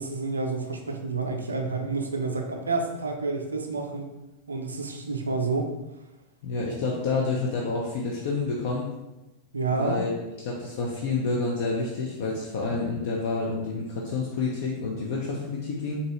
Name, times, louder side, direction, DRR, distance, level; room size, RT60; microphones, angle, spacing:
voice 1, 0.0-4.1 4.5-5.7 9.5-10.0, right 3 dB, 75° right, 3 dB, 0.5 m, -29 dB
voice 2, 6.4-8.9 9.7-16.0, left 3 dB, 55° left, -2 dB, 0.5 m, -29 dB
3.9 x 2.7 x 3.0 m, 1.0 s
figure-of-eight pair, 90°, 0 cm